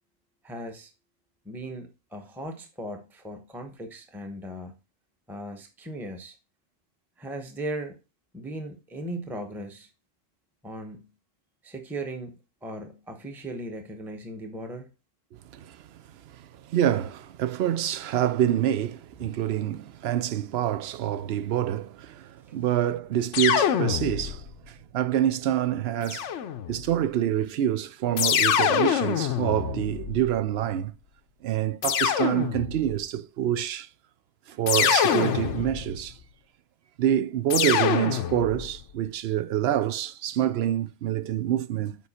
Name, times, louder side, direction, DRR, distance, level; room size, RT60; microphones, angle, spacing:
voice 1, 0.4-0.9 1.4-4.7 5.3-6.4 7.2-7.9 8.3-9.9 10.6-11.1 11.6-14.9 19.2-19.3, right 1 dB, ahead, 0.9 m, -37 dB
voice 2, 15.3-15.8 16.3-26.3 26.7-30.9 31.4-33.9 34.5-36.2 37.0-42.0, right 11 dB, 65° right, 0.8 m, -27 dB
sound 1, 23.3-24.5 26.1-26.9 28.2-30.5 31.8-32.9 34.7-36.0 37.5-38.7, left 9 dB, 85° left, 1.0 m, -25 dB
7.4 x 4.7 x 4.2 m
omnidirectional pair, 1.2 m